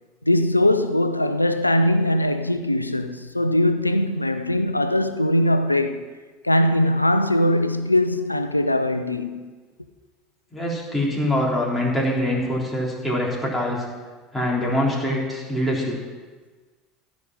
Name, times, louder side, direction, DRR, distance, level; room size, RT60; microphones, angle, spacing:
voice 1, 0.2-6.0 6.4-9.4, left 1 dB, 90° left, 0.6 m, -21 dB
voice 2, 10.5-13.8 14.3-16.0, left 1 dB, ahead, 3.7 m, -24 dB
15.0 x 5.3 x 7.5 m
figure-of-eight pair, 70°, 0 cm